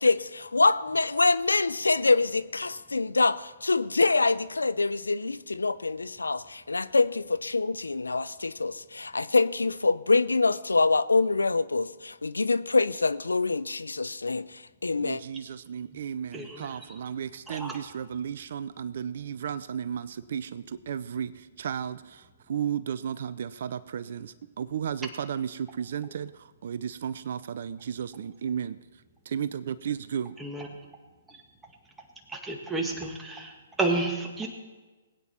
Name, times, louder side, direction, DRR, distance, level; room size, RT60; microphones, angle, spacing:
voice 1, 0.0-14.5 14.8-15.2, left 3 dB, 90° left, 17 dB, 0.5 m, -25 dB
voice 2, 15.0-28.8 29.3-30.4, right 8 dB, 60° right, 15 dB, 0.5 m, -34 dB
voice 3, 16.3-16.8 17.5-17.8 30.4-30.7 31.3-31.4 32.3-34.5, right 2 dB, 10° right, 1 dB, 1.9 m, -31 dB
20.0 x 9.0 x 4.4 m, 1.3 s
hypercardioid pair, 130°, 0 cm